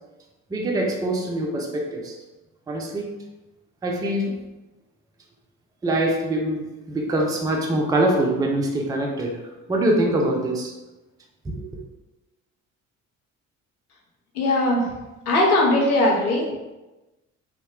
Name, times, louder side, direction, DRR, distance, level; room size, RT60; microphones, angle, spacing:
voice 1, 0.5-2.2 2.7-3.1 3.8-4.3 5.8-9.4 9.7-10.7 11.4-11.7, right 1 dB, 10° right, 0 dB, 0.4 m, -24 dB
voice 2, 14.3-14.9 15.3-16.4, left 1 dB, 90° left, -2 dB, 0.6 m, -19 dB
2.8 x 2.1 x 3.1 m, 1.1 s
figure-of-eight pair, 50°, 43 cm